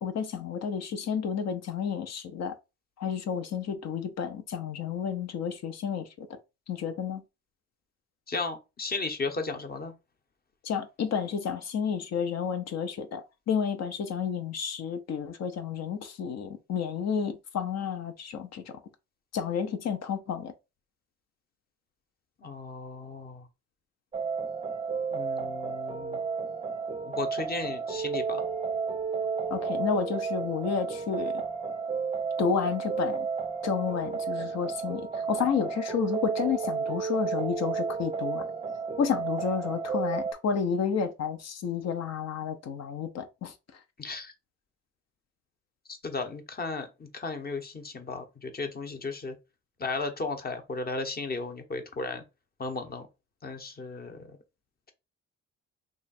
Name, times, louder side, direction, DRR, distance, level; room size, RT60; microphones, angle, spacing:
voice 1, 0.0-2.6 3.0-6.4 6.7-7.2 10.6-18.7 19.3-20.5 29.5-31.4 32.4-33.3 33.6-38.4 39.0-43.5, left 6 dB, 60° left, 0.7 m, -31 dB
voice 2, 8.3-9.9 22.4-23.5 25.1-26.2 27.0-28.4 44.0-44.3 45.9-49.3 49.8-52.2 52.6-53.1 53.4-54.4, left 3 dB, 30° left, 0.9 m, -35 dB
sound 1, 24.1-40.3, right 5 dB, 20° right, 0.5 m, -32 dB
3.0 x 2.4 x 4.1 m
cardioid pair, 90°, 30 cm